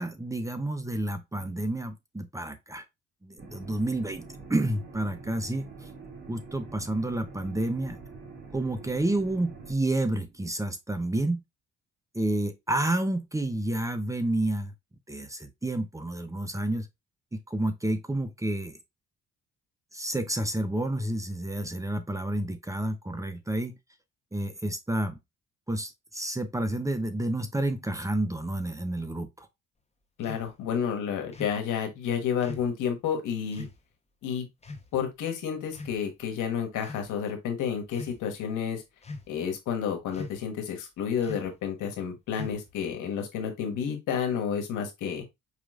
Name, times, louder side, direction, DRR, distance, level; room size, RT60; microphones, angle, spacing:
voice 1, 0.0-2.8 3.2-4.2 4.5-5.7 6.3-8.0 8.5-11.4 12.1-14.7 15.1-16.9 17.3-18.8 19.9-23.7 24.3-25.2 25.7-29.5, right 1 dB, 10° right, 0.7 m, -30 dB
sound 1, 3.4-9.7, right 4 dB, 40° right, 2.1 m, -45 dB
voice 2, 30.2-33.7 34.2-34.5 34.9-38.8 39.3-45.2, left 7 dB, 85° left, 1.3 m, -30 dB
sound 2, 30.2-30.5 31.3-31.6 32.4-32.7 33.5-33.8 34.6-34.9 35.7-36.3 36.8-37.1 37.8-38.2 39.0-39.4 40.1-40.5 41.2-41.6 42.3-42.8, left 3 dB, 20° left, 0.9 m, -42 dB
4.9 x 3.0 x 2.4 m
cardioid pair, 90°, 30 cm